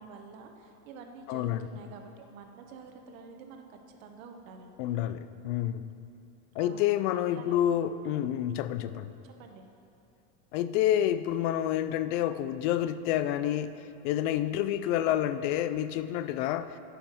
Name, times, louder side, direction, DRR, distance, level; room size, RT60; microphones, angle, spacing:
voice 1, 0.0-4.9 6.5-6.9 7.3-7.6 9.2-9.6, right 4 dB, 80° right, 4 dB, 1.2 m, -48 dB
voice 2, 1.3-1.7 4.8-5.9 6.5-9.2 10.5-16.8, left 11 dB, 65° left, 13 dB, 0.5 m, -29 dB
9.1 x 5.9 x 6.6 m, 2.6 s
supercardioid pair, 135°, 40 cm